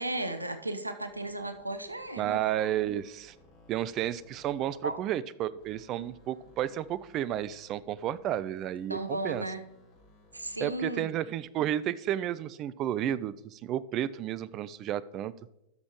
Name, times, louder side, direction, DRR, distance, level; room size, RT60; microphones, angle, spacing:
voice 1, 0.0-2.4 4.8-4.9 8.9-9.6 10.3-11.1, right 1 dB, 85° right, 9 dB, 0.7 m, -35 dB
sound 1, 1.0-5.3 5.5-11.0, left 2 dB, 40° left, 3.6 m, -60 dB
voice 2, 2.2-3.3 3.7-9.4 10.6-15.3, right 11 dB, 35° right, 18 dB, 0.3 m, -32 dB
12.5 x 6.2 x 3.0 m, 0.87 s
figure-of-eight pair, 90°, 0 cm